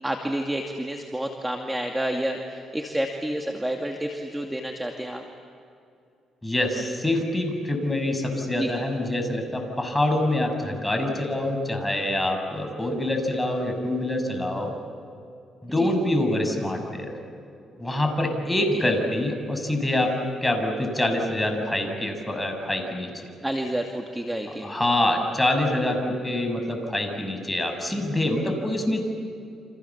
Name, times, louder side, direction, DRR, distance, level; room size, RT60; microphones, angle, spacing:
voice 1, 0.0-5.2 8.6-8.7 15.7-15.9 23.4-24.9, right 1 dB, 10° right, 3 dB, 2.4 m, -29 dB
voice 2, 6.4-14.7 15.6-17.1 17.8-20.1 20.4-23.3 24.6-29.0, left 1 dB, 10° left, 4 dB, 6.7 m, -25 dB
30.0 x 27.0 x 7.3 m, 2.5 s
cardioid pair, 90°, 0 cm